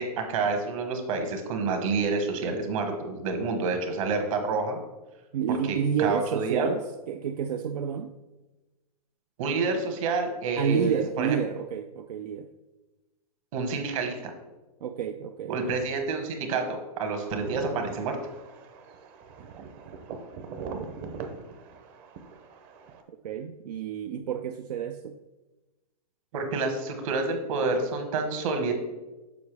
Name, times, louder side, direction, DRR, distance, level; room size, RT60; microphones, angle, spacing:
voice 1, 0.0-4.8 5.7-6.7 9.4-11.4 13.5-14.1 15.5-18.2 26.3-28.7, right 4 dB, 60° right, 4 dB, 1.4 m, -28 dB
voice 2, 5.3-8.1 10.6-12.5 14.8-15.8 19.5-19.6 23.1-25.2, right 8 dB, 85° right, 7 dB, 0.4 m, -30 dB
sound 1, 17.2-23.0, right 5 dB, 35° right, 0.7 m, -42 dB
6.9 x 5.7 x 3.3 m, 1.1 s
hypercardioid pair, 140°, 20 cm